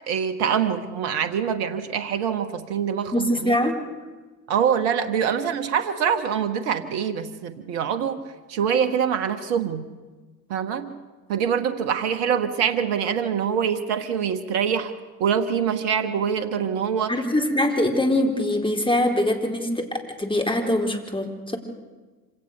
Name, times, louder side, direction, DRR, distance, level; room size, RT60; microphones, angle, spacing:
voice 1, 0.1-3.6 4.5-8.2 8.5-9.9 10.5-11.0 11.3-14.9 15.2-17.2, right 7 dB, 75° right, 9 dB, 1.4 m, -24 dB
voice 2, 3.1-3.8 17.1-21.6, left 1 dB, 10° left, 3 dB, 4.3 m, -23 dB
26.0 x 18.0 x 6.7 m, 1.3 s
hypercardioid pair, 60°, 48 cm